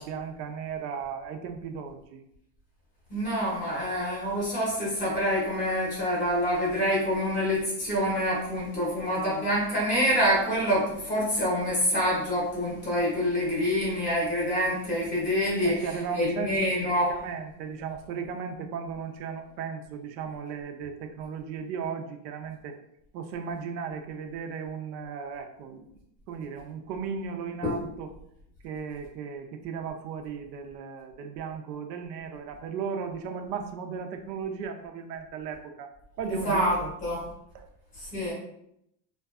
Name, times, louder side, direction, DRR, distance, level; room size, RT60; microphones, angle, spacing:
voice 1, 0.0-2.2 15.2-15.3 15.6-22.8 23.1-25.9 26.3-28.1 28.6-35.9 36.2-36.9 37.5-37.7, right 6 dB, 90° right, 5 dB, 0.6 m, -36 dB
voice 2, 3.1-15.9 16.2-17.1 27.6-27.8 36.2-36.8 37.0-37.2 38.0-38.3, equal, 15° left, -6 dB, 0.6 m, -26 dB
2.6 x 2.2 x 2.3 m, 0.77 s
supercardioid pair, 165°, 48 cm